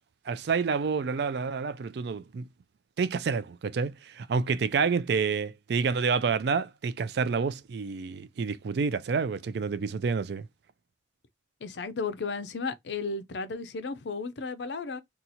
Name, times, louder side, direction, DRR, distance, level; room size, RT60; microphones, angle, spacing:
voice 1, 0.3-2.4 3.0-10.5, right 5 dB, 65° right, 0.4 m, -28 dB
voice 2, 11.6-15.0, left 4 dB, 75° left, 0.5 m, -34 dB
2.8 x 2.3 x 4.0 m
head